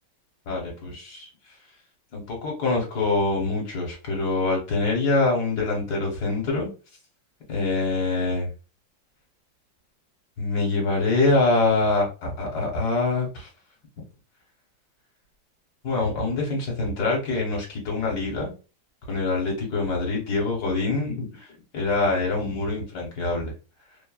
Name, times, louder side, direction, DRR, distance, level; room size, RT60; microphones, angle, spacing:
voice 1, 0.5-1.3 2.1-6.7 7.5-8.5 10.4-13.5 15.8-18.5 19.1-21.5 21.7-23.5, left 3 dB, 60° left, -1 dB, 1.4 m, -25 dB
3.2 x 2.2 x 2.2 m, 0.32 s
omnidirectional pair, 2.1 m